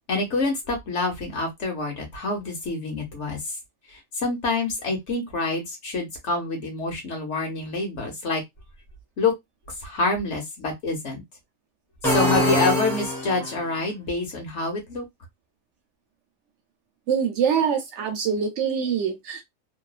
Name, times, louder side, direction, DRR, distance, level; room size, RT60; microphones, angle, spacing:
voice 1, 0.1-3.5 3.9-8.4 9.2-9.3 9.8-11.2 12.1-15.0, left 3 dB, 60° left, 1.3 m, -27 dB
sound 1, 12.0-13.6, left 1 dB, ahead, 0.9 m, -23 dB
voice 2, 17.1-19.4, right 7 dB, 65° right, 0.8 m, -24 dB
3.0 x 2.1 x 2.3 m
omnidirectional pair, 1.4 m